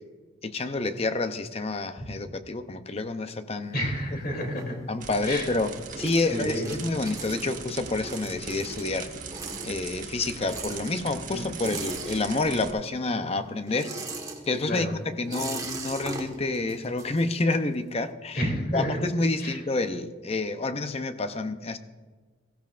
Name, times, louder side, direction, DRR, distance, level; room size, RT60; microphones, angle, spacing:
voice 1, 0.4-3.8 4.9-9.1 9.6-14.0 14.5-18.4 18.7-21.8, left 2 dB, 30° left, 9 dB, 0.6 m, -28 dB
sound 1, 3.6-5.2 5.6-12.8 13.1-17.8, right 3 dB, 15° right, 1.3 m, -40 dB
voice 2, 3.7-4.7 5.2-5.5 6.3-6.7 11.3-11.5 14.7-14.9 18.3-19.0 19.4-19.6, equal, 45° left, 1 dB, 3.0 m, -30 dB
sound 2, 5.0-12.7, right 4 dB, 35° right, 1.2 m, -40 dB
16.0 x 15.5 x 2.5 m, 1.4 s
head